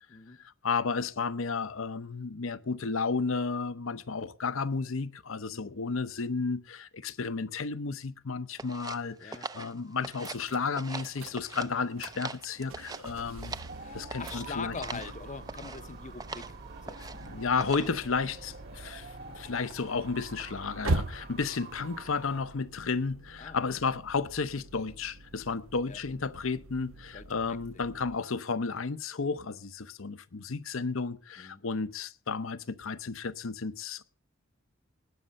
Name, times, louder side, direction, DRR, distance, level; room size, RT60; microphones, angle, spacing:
voice 1, 0.6-13.6 13.9-15.0 17.0-34.0, left 4 dB, 75° left, 0.8 m, -33 dB
sound 1, 8.6-10.5 10.7-11.7 12.0-13.8 14.1-14.4 14.8-15.1 15.5-15.8 16.2-16.5 16.9-17.3 17.6-18.0, right 4 dB, 20° right, 0.5 m, -41 dB
sound 2, 10.2-28.2, right 2 dB, 90° right, 0.9 m, -42 dB
sound 3, 13.7-22.4, right 3 dB, 55° right, 1.8 m, -48 dB
voice 2, 13.8-16.6 16.9-17.2 23.4-23.6 25.9-26.0 27.1-27.3 31.4-31.6, left 5 dB, 35° left, 0.7 m, -43 dB
19.0 x 6.7 x 5.3 m
head